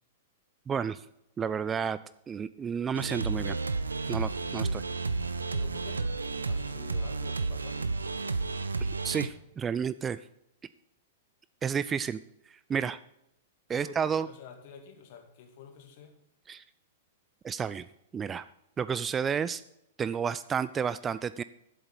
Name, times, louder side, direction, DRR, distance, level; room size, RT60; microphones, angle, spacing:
voice 1, 0.7-1.0 1.4-2.0 2.3-3.6 4.1-4.8 8.8-10.2 11.6-12.2 12.5-13.0 13.7-14.3 16.5-16.6 17.4-17.9 18.1-18.5 18.8-19.6 20.0-21.4, right 7 dB, 20° right, 15 dB, 0.4 m, -31 dB
sound 1, 2.9-9.3, right 3 dB, 80° right, 0.7 m, -32 dB
voice 2, 5.5-6.0 6.3-8.0 13.7-16.2, left 7 dB, 50° left, 5 dB, 2.2 m, -49 dB
7.9 x 7.7 x 8.0 m, 0.79 s
figure-of-eight pair, 105°, 0 cm